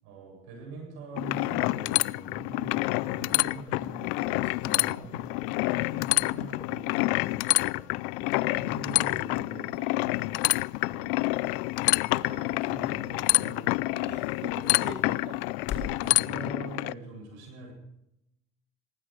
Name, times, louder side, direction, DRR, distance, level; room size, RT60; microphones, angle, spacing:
voice 1, 0.0-4.3 4.6-7.9 8.4-10.4 10.8-11.4 12.1-14.2 14.8-15.2 15.8-17.7, right 3 dB, 80° right, 3 dB, 8.0 m, -44 dB
sound 1, 1.2-16.9, left 24 dB, 80° left, 0.5 m, -28 dB
sound 2, 3.3-16.6, left 2 dB, 10° left, 1.6 m, -51 dB
voice 2, 4.1-5.0 8.3-8.5 14.0-15.4 15.7-15.9, right 3 dB, 40° right, 1 dB, 2.9 m, -44 dB
sound 3, 9.8-16.0, left 7 dB, 55° left, 1.7 m, -45 dB
18.5 x 15.5 x 4.7 m, 0.83 s
supercardioid pair, 90°, 29 cm